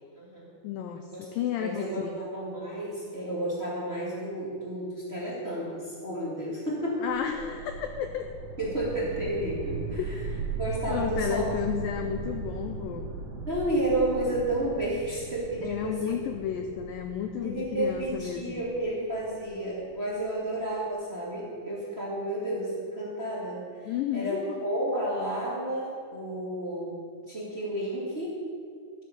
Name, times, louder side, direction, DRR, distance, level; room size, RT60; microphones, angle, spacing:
voice 1, 0.0-0.5 1.1-1.3 1.6-7.1 8.6-10.2 10.6-11.5 13.4-16.1 17.4-27.0 27.3-28.4, right 1 dB, 20° right, -6 dB, 1.8 m, -31 dB
voice 2, 0.6-2.2 7.0-8.3 10.9-13.1 15.6-18.6 23.9-24.6, left 9 dB, 85° left, 6 dB, 2.0 m, -32 dB
sound 1, 7.0-20.1, right 4 dB, 60° right, 3.5 m, -38 dB
14.0 x 8.0 x 6.7 m, 2.2 s
omnidirectional pair, 4.7 m